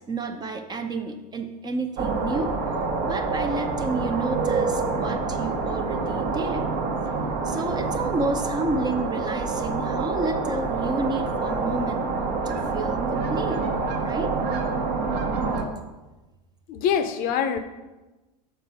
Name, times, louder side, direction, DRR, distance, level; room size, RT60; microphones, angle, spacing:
voice 1, 0.1-2.7 3.0-6.7 7.4-12.2 12.4-13.7 14.0-14.3, right 3 dB, 20° right, 7 dB, 0.5 m, -30 dB
sound 1, 2.0-15.6, right 4 dB, 60° right, 1.1 m, -27 dB
voice 2, 16.7-17.6, left 8 dB, 45° left, 10 dB, 0.6 m, -24 dB
6.7 x 4.6 x 5.0 m, 1.1 s
hypercardioid pair, 110°, 21 cm